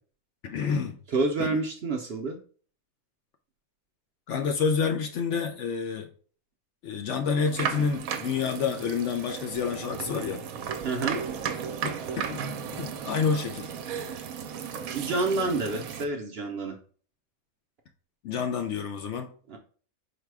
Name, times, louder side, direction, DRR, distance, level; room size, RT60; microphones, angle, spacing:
voice 1, 0.4-1.0 1.4-1.5 4.3-6.1 6.8-10.4 11.8-12.0 12.3-12.4 12.7-13.7 18.2-19.3, left 6 dB, 65° left, 6 dB, 0.8 m, -28 dB
voice 2, 1.1-2.4 10.8-11.2 14.8-16.8 19.5-19.6, right 3 dB, 55° right, 3 dB, 0.7 m, -28 dB
sound 1, 7.4-16.0, right 7 dB, 75° right, 1.0 m, -35 dB
4.8 x 2.2 x 4.6 m, 0.42 s
omnidirectional pair, 1.5 m